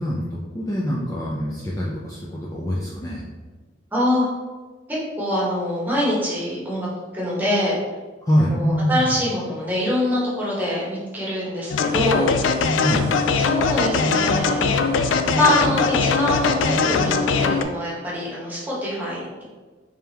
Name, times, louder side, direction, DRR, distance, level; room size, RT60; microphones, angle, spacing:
voice 1, 0.0-3.3 8.2-9.1 12.8-13.0, equal, 20° left, -5 dB, 0.4 m, -24 dB
voice 2, 3.9-4.3 4.9-7.8 8.4-12.3 13.4-14.7 15.3-19.4, left 1 dB, 10° right, -6 dB, 1.1 m, -24 dB
sound 1, 11.7-17.6, left 5 dB, 80° left, 0.3 m, -21 dB
sound 2, 11.9-17.7, right 1 dB, 65° right, 0.6 m, -33 dB
3.6 x 3.3 x 2.9 m, 1.3 s
head